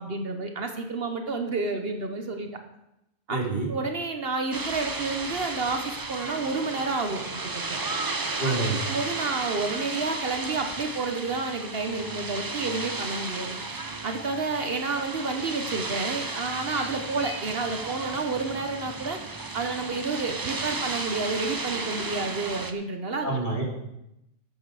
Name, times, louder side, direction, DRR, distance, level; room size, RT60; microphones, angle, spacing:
voice 1, 0.0-2.5 3.3-3.4 3.7-7.6 8.4-13.6 14.0-19.2 19.5-23.4, right 3 dB, 55° right, 5 dB, 1.2 m, -30 dB
voice 2, 3.3-3.7 8.4-8.8 23.2-23.6, right 2 dB, 45° left, -3 dB, 3.1 m, -27 dB
sound 1, 4.5-22.7, right 3 dB, 25° right, 0.5 m, -34 dB
12.0 x 7.9 x 4.9 m, 0.87 s
omnidirectional pair, 1.2 m